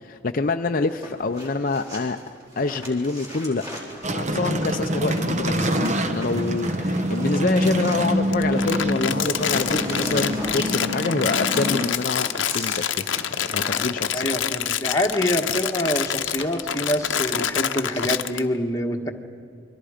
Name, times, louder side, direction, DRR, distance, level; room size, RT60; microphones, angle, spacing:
voice 1, 0.0-2.2 2.6-3.6 4.1-14.3, left 3 dB, 45° left, 5 dB, 0.6 m, -26 dB
sound 1, 0.9-8.6 8.8-18.1, equal, 20° right, 4.1 m, -39 dB
sound 2, 4.0-11.9, equal, 35° right, 1.1 m, -25 dB
Crumpling crinkling, 8.3-18.4, left 9 dB, 70° left, 0.8 m, -26 dB
voice 2, 14.1-19.1, left 1 dB, 15° left, 2 dB, 1.4 m, -25 dB
29.0 x 23.5 x 5.1 m, 2.3 s
head